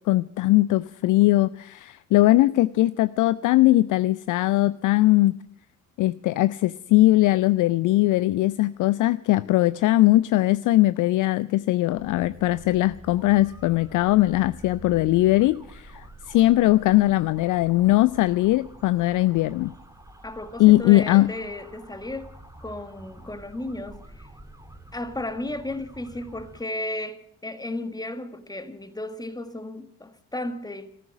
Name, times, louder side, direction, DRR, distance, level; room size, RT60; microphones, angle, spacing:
voice 1, 0.1-5.3 6.0-19.7 20.6-21.3, left 17 dB, 45° left, 0.5 m, -20 dB
sound 1, 11.9-26.6, right 1 dB, 5° right, 2.0 m, -47 dB
voice 2, 20.2-22.3 22.6-24.3 24.9-30.9, left 1 dB, 10° left, 1.6 m, -34 dB
14.5 x 14.0 x 7.2 m
figure-of-eight pair, 45°, 44 cm